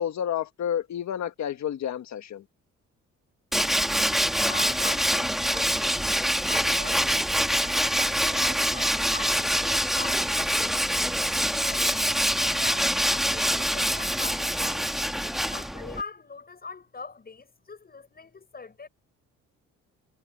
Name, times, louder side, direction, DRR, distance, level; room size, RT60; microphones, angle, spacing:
voice 1, 0.0-2.4, left 9 dB, 65° left, 1.6 m, -30 dB
Tools, 3.5-16.0, equal, ahead, 2.2 m, -25 dB
voice 2, 4.4-5.8 6.5-7.1 7.4-11.2 11.6-11.9 12.4-14.9 15.5-18.9, left 4 dB, 30° left, 6.6 m, -42 dB
cardioid pair, 90°, 30 cm